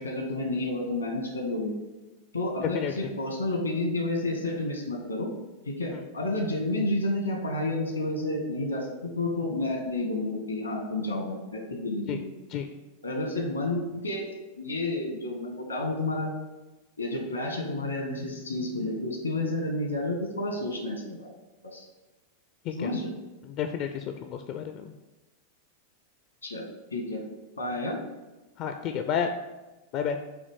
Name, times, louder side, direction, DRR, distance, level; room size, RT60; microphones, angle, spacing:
voice 1, 0.0-1.7 2.3-5.3 5.6-12.3 13.0-14.3 14.6-16.3 17.0-21.3 21.6-21.9 22.7-23.1 26.4-27.2 27.6-28.0, left 2 dB, 80° left, 2 dB, 1.5 m, -30 dB
voice 2, 23.6-24.9 28.6-29.3 29.9-30.2, left 8 dB, 40° left, 6 dB, 0.4 m, -30 dB
8.1 x 3.0 x 6.3 m, 1.1 s
figure-of-eight pair, 90°, 0 cm